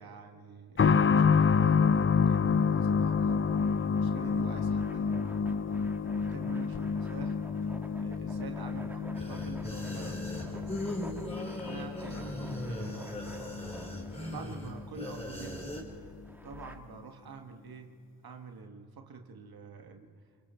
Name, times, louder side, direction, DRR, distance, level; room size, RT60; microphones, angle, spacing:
voice 1, 0.0-3.4 3.8-5.6 6.1-7.4 8.0-10.8 11.6-13.2 14.0-15.8 16.4-20.1, right 5 dB, 85° right, 4 dB, 1.6 m, -47 dB
sound 1, 0.8-15.2 15.5-15.6 16.5-16.6, left 6 dB, 35° left, 0.5 m, -29 dB
sound 2, 2.1-16.8, right 1 dB, 5° right, 1.6 m, -52 dB
sound 3, 9.1-15.8, left 1 dB, 15° left, 4.3 m, -39 dB
29.5 x 22.0 x 4.4 m, 2.3 s
cardioid pair, 70°, 35 cm